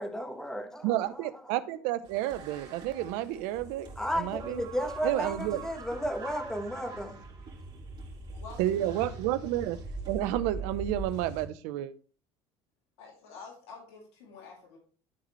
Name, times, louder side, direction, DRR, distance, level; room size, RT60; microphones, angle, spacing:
voice 1, 0.0-1.2 4.0-7.2, equal, 5° left, 1.3 m, -33 dB
voice 2, 0.8-3.9 4.2-4.6 5.0-5.6 8.6-9.8 10.1-11.9, right 13 dB, 75° right, 0.7 m, -30 dB
sound 1, 2.1-11.5, right 2 dB, 40° right, 2.9 m, -42 dB
voice 3, 8.3-9.2 13.0-14.8, left 4 dB, 85° left, 2.6 m, -48 dB
12.5 x 4.1 x 3.0 m
supercardioid pair, 95°, 13 cm